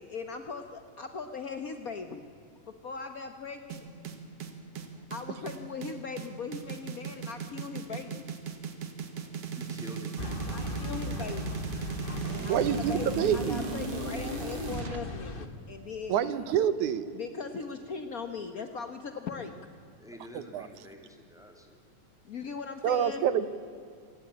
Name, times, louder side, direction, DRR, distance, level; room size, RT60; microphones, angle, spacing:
voice 1, 0.0-2.2 2.7-3.9 4.7-4.8 5.1-8.3 10.5-11.6 12.3-16.3 17.1-19.5 22.2-23.2, left 5 dB, 65° left, 7 dB, 0.8 m, -39 dB
sound 1, 3.7-15.0, right 6 dB, 55° right, 2.8 m, -37 dB
voice 2, 9.5-10.5 20.0-21.8, left 1 dB, ahead, 3 dB, 3.0 m, -48 dB
sound 2, 10.2-15.5, left 3 dB, 35° left, 0.9 m, -38 dB
voice 3, 12.5-13.7 16.1-17.1 20.5-20.7 22.8-23.5, right 9 dB, 80° right, 14 dB, 2.6 m, -27 dB
26.5 x 19.5 x 8.7 m, 2.3 s
omnidirectional pair, 3.4 m